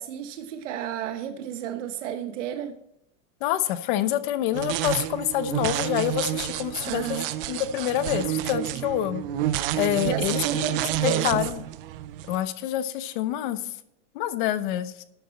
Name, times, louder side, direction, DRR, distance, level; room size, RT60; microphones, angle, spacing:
voice 1, 0.0-2.8 6.8-7.3 10.0-11.4, right 10 dB, 70° right, 1.1 m, -32 dB
voice 2, 3.4-7.2 7.5-9.2 9.8-11.6 12.3-13.6 14.1-15.0, left 12 dB, 40° left, 0.9 m, -27 dB
sound 1, 4.5-12.4, right 13 dB, 45° right, 0.6 m, -29 dB
12.5 x 9.1 x 4.2 m
supercardioid pair, 180°, 37 cm